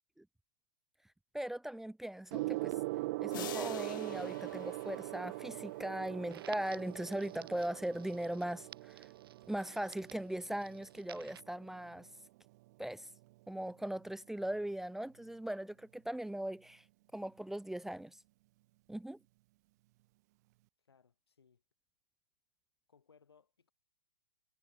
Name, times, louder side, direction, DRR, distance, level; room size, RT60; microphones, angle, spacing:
voice 1, 1.3-2.7 3.2-9.1 9.5-12.1 12.8-13.1 13.5-16.8 17.1-18.2 18.9-19.2, right 1 dB, 5° right, 0.7 m, -39 dB
Gong, 2.3-12.1 13.0-13.3, right 20 dB, 45° right, 0.3 m, -42 dB
sound 1, 3.3-6.1, left 15 dB, 55° left, 1.4 m, -48 dB
Crackle, 6.3-11.4, right 10 dB, 70° right, 6.8 m, -56 dB
voice 2, 20.9-21.6 22.9-23.7, left 6 dB, 85° left, 7.6 m, -66 dB
hypercardioid pair, 125°, 13 cm